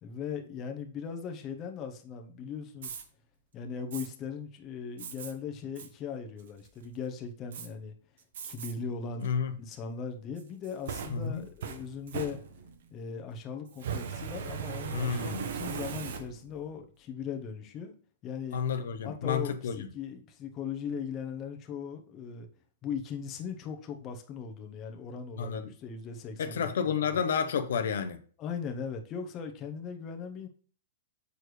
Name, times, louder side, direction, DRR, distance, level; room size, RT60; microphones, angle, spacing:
voice 1, 0.0-2.9 3.5-7.9 8.4-9.3 9.6-12.4 12.9-17.9 18.2-18.6 19.0-22.5 22.8-26.7 28.4-30.5, left 6 dB, 30° left, 0.9 m, -39 dB
Fire, 2.7-3.0 3.9-4.1 5.0-5.3 5.8-5.9 6.4-6.8 7.5-7.7 8.3-8.7 9.2-9.3 10.4-12.8 13.7-16.6, right 7 dB, 70° right, 0.9 m, -38 dB
voice 2, 9.2-9.5 11.1-11.4 14.9-15.5 18.5-19.9 25.4-25.7 26.4-28.2, left 6 dB, 80° left, 0.7 m, -30 dB
6.6 x 4.5 x 3.2 m
hypercardioid pair, 140°, 0 cm